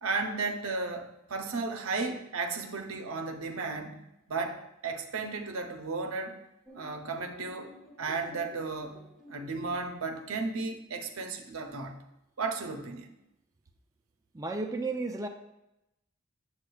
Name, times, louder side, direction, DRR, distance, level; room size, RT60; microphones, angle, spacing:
voice 1, 0.0-4.0 4.3-6.4 6.7-7.7 8.0-9.0 9.3-12.0 12.4-13.1, right 4 dB, 85° right, 4 dB, 0.7 m, -34 dB
sound 1, 6.7-10.3, equal, ahead, 1.0 m, -51 dB
voice 2, 14.3-15.3, right 3 dB, 15° right, 3 dB, 0.4 m, -33 dB
8.2 x 7.1 x 2.3 m, 0.88 s
head